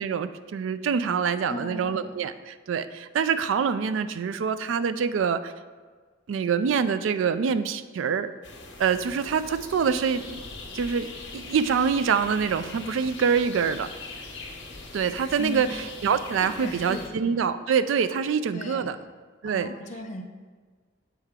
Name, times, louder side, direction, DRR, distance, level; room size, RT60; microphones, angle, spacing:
voice 1, 0.0-5.5 6.3-8.3 8.8-10.4 10.7-13.9 14.9-19.0 19.4-19.7, right 6 dB, 80° right, 12 dB, 0.3 m, -25 dB
voice 2, 1.5-2.1 15.4-15.8 16.4-17.1 18.5-18.9 19.4-20.2, left 1 dB, 35° left, 3 dB, 0.6 m, -37 dB
sound 1, 8.4-17.1, left 3 dB, 65° left, 1.1 m, -41 dB
8.2 x 4.5 x 3.6 m, 1.5 s
head